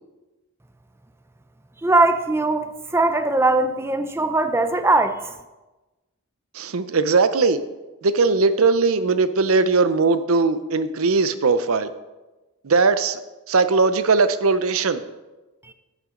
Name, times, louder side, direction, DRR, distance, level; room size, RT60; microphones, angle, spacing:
voice 1, 1.8-5.3 15.7-15.8, right 2 dB, 10° right, 9 dB, 0.4 m, -20 dB
voice 2, 6.5-7.6 8.0-11.9 12.6-13.2 13.5-15.0, right 4 dB, 75° right, 12 dB, 0.6 m, -19 dB
11.0 x 8.2 x 3.8 m, 1.1 s
head